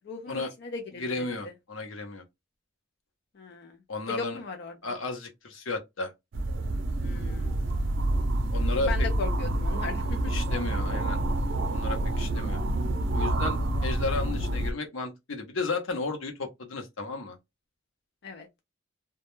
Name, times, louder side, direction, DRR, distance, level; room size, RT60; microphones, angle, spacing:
voice 1, 0.1-1.3 3.4-3.8 4.1-4.7 7.0-7.5 8.9-10.4 18.2-18.5, left 4 dB, 55° left, 0.4 m, -37 dB
voice 2, 1.0-2.2 3.9-4.4 4.8-6.1 8.5-9.1 10.3-11.2 11.7-12.6 13.1-17.4, left 3 dB, 90° left, 0.7 m, -33 dB
sound 1, 6.3-14.7, right 1 dB, 65° right, 0.4 m, -28 dB
2.2 x 2.1 x 2.9 m
head